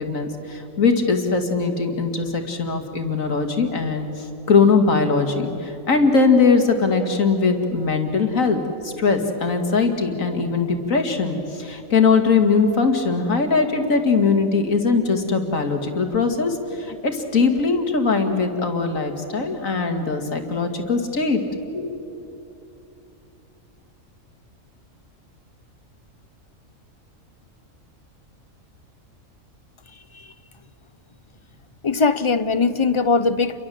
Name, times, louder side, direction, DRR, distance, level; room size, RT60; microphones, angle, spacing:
voice 1, 0.0-21.4 21.7-22.3, left 4 dB, 75° left, 5 dB, 2.6 m, -21 dB
voice 2, 31.8-33.6, left 4 dB, 30° left, 13 dB, 0.6 m, -20 dB
29.5 x 23.5 x 7.8 m, 2.8 s
omnidirectional pair, 1.4 m